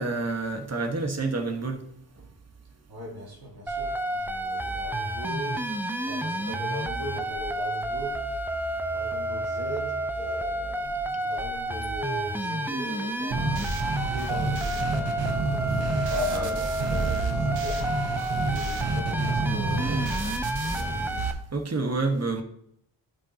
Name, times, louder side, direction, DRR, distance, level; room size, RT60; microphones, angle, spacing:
voice 1, 0.0-1.8 16.3-16.5 21.5-22.4, right 3 dB, 35° right, 1.4 m, -28 dB
voice 2, 2.9-5.7 6.1-8.3 8.9-17.9 18.5-21.0, equal, 55° right, 2.0 m, -38 dB
sound 1, 3.7-21.3, right 1 dB, 5° right, 0.5 m, -30 dB
sound 2, 13.3-21.3, right 3 dB, 85° right, 1.3 m, -29 dB
12.0 x 5.5 x 2.9 m
cardioid pair, 85°, 44 cm